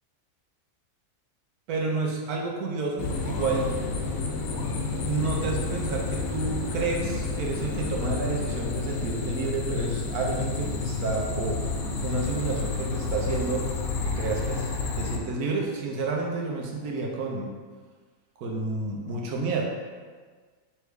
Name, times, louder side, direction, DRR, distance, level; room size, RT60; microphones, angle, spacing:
voice 1, 1.7-3.7 5.0-11.6 12.0-13.7 14.0-14.7 15.0-17.5 18.4-19.6, right 3 dB, 75° right, 0 dB, 1.2 m, -30 dB
sound 1, 3.0-15.2, left 3 dB, 75° left, 1.0 m, -30 dB
3.4 x 3.3 x 4.7 m, 1.5 s
omnidirectional pair, 1.6 m